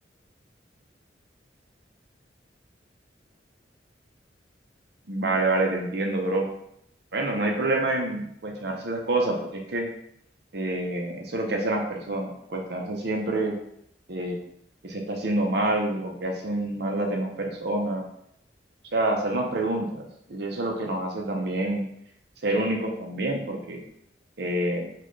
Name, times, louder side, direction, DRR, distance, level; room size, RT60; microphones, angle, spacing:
voice 1, 5.1-6.5 7.1-9.9 10.5-13.5 14.1-14.4 14.8-18.1 18.9-21.9 22.4-23.8 24.4-24.8, right 2 dB, 65° right, 1 dB, 0.7 m, -27 dB
4.1 x 2.4 x 3.1 m, 0.73 s
head